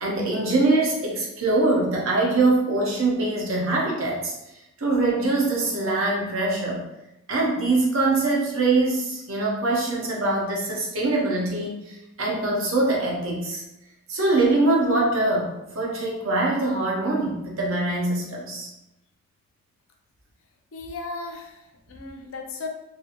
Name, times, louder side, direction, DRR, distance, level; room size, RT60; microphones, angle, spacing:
voice 1, 0.0-4.3 4.8-6.8 7.3-13.6 14.1-18.7 22.2-22.3, right 2 dB, 60° right, -2 dB, 0.7 m, -23 dB
voice 2, 20.7-22.7, left 3 dB, 60° left, 2 dB, 0.4 m, -36 dB
2.5 x 2.4 x 2.8 m, 0.91 s
head